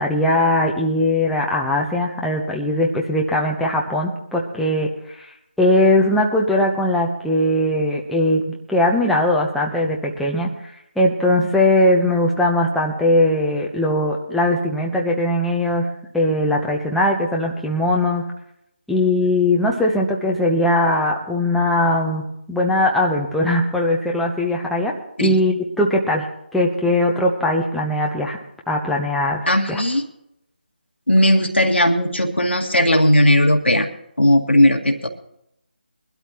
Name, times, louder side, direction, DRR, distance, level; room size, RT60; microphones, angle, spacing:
voice 1, 0.0-5.3 5.6-10.5 11.0-15.9 16.1-18.3 18.9-24.9 25.2-26.3 26.5-28.4 28.7-29.4 29.7-29.8, left 1 dB, ahead, -3 dB, 0.8 m, -20 dB
voice 2, 29.5-30.0 31.1-33.9 34.2-35.1, left 1 dB, 90° left, 3 dB, 2.0 m, -16 dB
22.0 x 12.5 x 3.0 m, 0.78 s
figure-of-eight pair, 160°, 6 cm